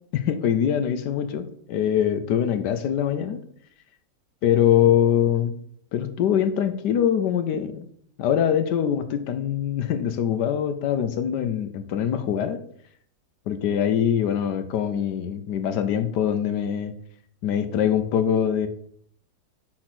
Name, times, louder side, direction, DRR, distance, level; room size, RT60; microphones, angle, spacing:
voice 1, 0.1-3.4 4.4-5.5 5.9-7.9 8.2-12.6 13.5-16.9 17.4-18.7, left 9 dB, 75° left, 9 dB, 1.2 m, -23 dB
4.9 x 4.3 x 5.9 m, 0.63 s
omnidirectional pair, 2.0 m